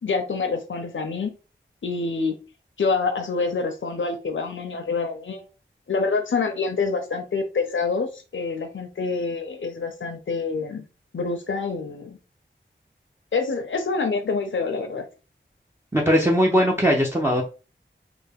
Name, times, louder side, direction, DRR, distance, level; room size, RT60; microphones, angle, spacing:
voice 1, 0.0-1.3 1.8-2.3 2.8-5.5 5.9-10.8 11.1-12.2 13.3-15.0, left 4 dB, 75° left, 5 dB, 0.6 m, -26 dB
voice 2, 15.9-17.4, equal, 10° right, -2 dB, 0.6 m, -19 dB
3.2 x 2.1 x 3.5 m, 0.32 s
wide cardioid pair, 60°, 20 cm